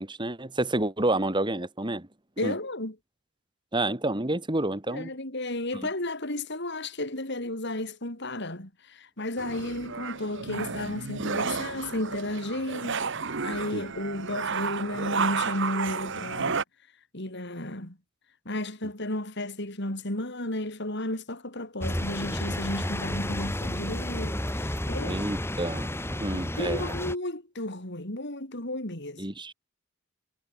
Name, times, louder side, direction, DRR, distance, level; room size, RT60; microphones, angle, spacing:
voice 1, 0.0-2.1 2.4-2.6 3.7-5.1 13.7-13.8 25.0-25.9 26.2-26.8 29.2-29.5, right 1 dB, 20° right, 1.9 m, -29 dB
voice 2, 2.4-2.9 4.9-13.0 13.4-16.6 17.1-18.0 18.4-25.2 26.3-29.2, left 1 dB, 55° left, 5.2 m, -33 dB
sound 1, 9.4-16.6, right 5 dB, 60° right, 1.3 m, -32 dB
sound 2, 21.8-27.1, left 1 dB, 10° left, 3.0 m, -31 dB
head